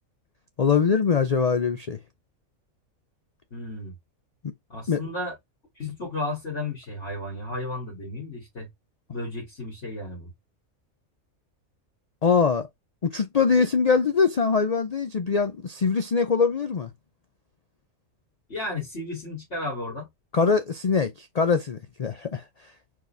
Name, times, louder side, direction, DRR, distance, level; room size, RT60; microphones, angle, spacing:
voice 1, 0.6-2.0 4.9-5.0 12.2-12.7 13.0-16.9 20.3-22.4, left 5 dB, 70° left, 0.3 m, -23 dB
voice 2, 3.5-3.9 4.7-5.4 5.8-8.7 9.1-10.3 18.5-20.1, left 2 dB, 55° left, 2.9 m, -33 dB
4.8 x 4.0 x 2.6 m
omnidirectional pair, 1.4 m